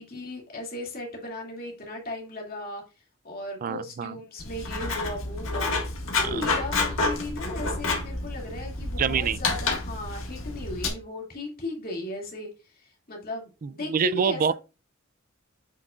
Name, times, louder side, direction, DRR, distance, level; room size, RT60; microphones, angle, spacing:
voice 1, 0.0-2.8 3.2-5.9 6.2-14.5, left 1 dB, 45° left, 2.5 m, -36 dB
voice 2, 3.6-4.2 6.2-6.5 9.0-9.4 13.6-14.5, right 7 dB, 40° right, 0.3 m, -26 dB
Writing, 4.4-10.9, left 3 dB, 70° left, 1.9 m, -29 dB
7.7 x 6.0 x 2.5 m
head